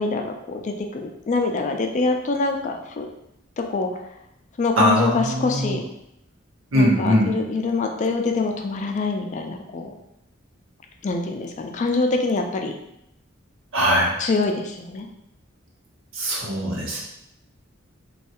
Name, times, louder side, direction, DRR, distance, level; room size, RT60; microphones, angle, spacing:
voice 1, 0.0-3.1 3.6-3.9 4.6-5.8 6.7-9.9 11.0-12.7 14.2-15.1, left 3 dB, 35° left, 4 dB, 0.3 m, -25 dB
voice 2, 4.8-5.8 6.7-7.4 13.7-14.2 16.1-17.0, equal, 80° right, -3 dB, 0.9 m, -21 dB
3.1 x 2.3 x 2.9 m, 0.80 s
head